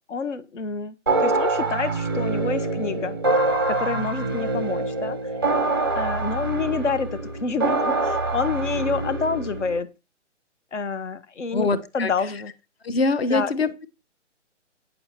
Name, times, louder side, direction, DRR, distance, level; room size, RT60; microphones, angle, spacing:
voice 1, 0.1-0.9 1.2-3.2 3.7-5.3 5.9-9.9 10.7-11.7 11.9-12.5 13.3-13.5, left 4 dB, 75° left, 1.2 m, -28 dB
sound 1, 1.1-9.8, right 2 dB, 20° right, 0.5 m, -25 dB
voice 2, 11.5-12.1 12.8-13.9, left 3 dB, 55° left, 1.0 m, -23 dB
8.6 x 6.7 x 4.3 m
hypercardioid pair, 165°, 37 cm